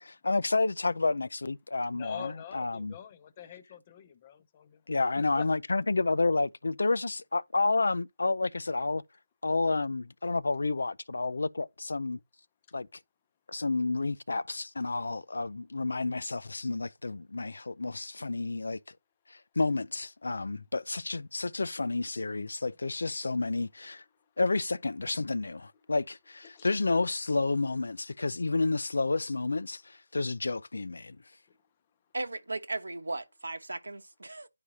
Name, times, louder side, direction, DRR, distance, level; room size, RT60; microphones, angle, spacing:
voice 1, 0.0-2.9 4.9-9.0 9.4-12.2 12.7-12.9 13.5-18.8 19.3-24.0 24.4-31.2, left 3 dB, 75° left, 0.5 m, -30 dB
voice 2, 1.9-4.8 5.2-5.5 26.4-26.7 31.5-31.6, left 9 dB, 25° left, 0.7 m, -45 dB
voice 3, 32.1-34.5, right 2 dB, 90° right, 1.1 m, -36 dB
10.5 x 4.9 x 2.8 m
figure-of-eight pair, 165°, 0 cm